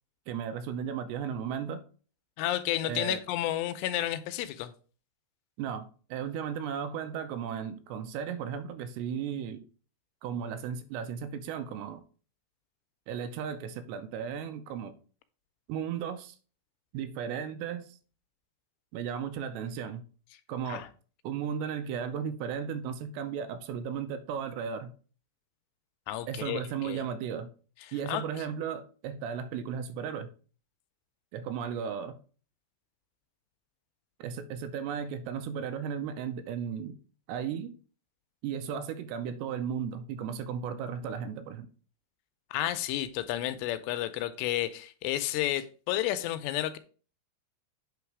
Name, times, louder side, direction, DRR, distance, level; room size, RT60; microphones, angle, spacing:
voice 1, 0.3-1.8 2.9-3.2 5.6-9.6 10.2-12.0 13.1-14.9 15.7-16.4 16.9-18.0 18.9-20.0 20.5-20.8 21.2-24.9 26.3-27.5 27.9-30.3 31.3-32.2 34.2-37.0 37.3-37.8 38.4-41.7, right 7 dB, 85° right, 2.8 m, -35 dB
voice 2, 2.4-4.7 20.7-20.9 26.1-27.0 28.1-28.2 42.5-46.8, left 13 dB, 85° left, 2.6 m, -31 dB
8.3 x 3.9 x 4.7 m
omnidirectional pair, 5.0 m